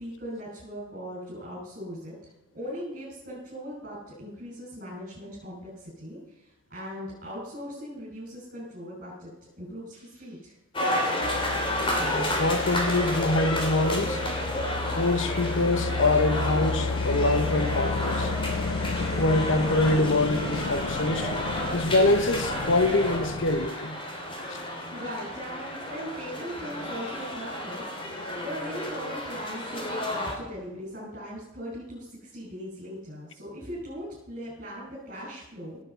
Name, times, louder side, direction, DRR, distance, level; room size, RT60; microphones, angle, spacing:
voice 1, 0.0-2.1 2.5-9.3 9.6-10.5 24.5-35.8, equal, 40° right, 6.5 m, -39 dB
sound 1, 10.7-30.3, left 1 dB, 25° left, 2.9 m, -31 dB
sound 2, 11.2-23.7, left 4 dB, 85° left, 0.6 m, -32 dB
voice 2, 12.0-14.2 14.9-18.3 19.2-21.3 21.7-24.0, left 2 dB, 65° left, 1.0 m, -24 dB
18.5 x 8.6 x 5.6 m
head